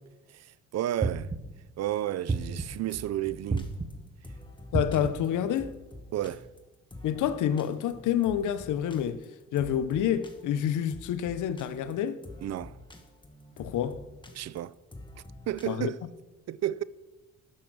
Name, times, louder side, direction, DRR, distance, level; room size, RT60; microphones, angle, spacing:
voice 1, 0.3-1.3 1.8-3.7 6.1-6.5 12.4-12.8 14.3-14.7 15.1-16.0 16.5-16.8, right 12 dB, 60° right, 0.5 m, -32 dB
sound 1, 1.0-1.7 2.3-2.9 3.5-4.1 4.7-5.4, right 3 dB, 20° right, 0.9 m, -31 dB
sound 2, 2.3-15.8, left 1 dB, 15° left, 1.6 m, -48 dB
voice 2, 4.7-5.8 7.0-9.2 9.5-12.2 13.6-14.0 15.7-15.9, left 10 dB, 80° left, 0.8 m, -28 dB
12.0 x 6.4 x 6.2 m
cardioid pair, 90°, 30 cm